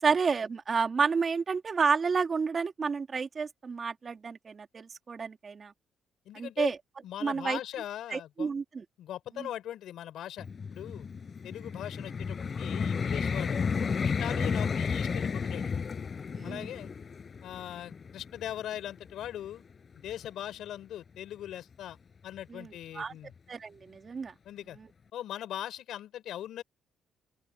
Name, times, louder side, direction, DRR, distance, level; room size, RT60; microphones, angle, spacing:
voice 1, 0.0-5.7 6.3-6.8 7.2-7.6 8.1-8.8 9.4-9.5 14.4-14.5 16.3-16.7 22.5-23.1 23.5-24.3 24.8-24.9, right 5 dB, 40° right, 3.0 m, -30 dB
voice 2, 6.3-6.7 7.0-8.5 9.0-13.7 14.0-15.7 16.4-16.9 17.4-19.6 19.9-22.0 22.2-23.3 24.4-24.8 25.1-26.6, left 11 dB, 80° left, 5.9 m, -40 dB
Vehicle, 10.4-19.5 20.1-20.3, left 5 dB, 40° left, 6.7 m, -32 dB
open air
cardioid pair, 90°, 0 cm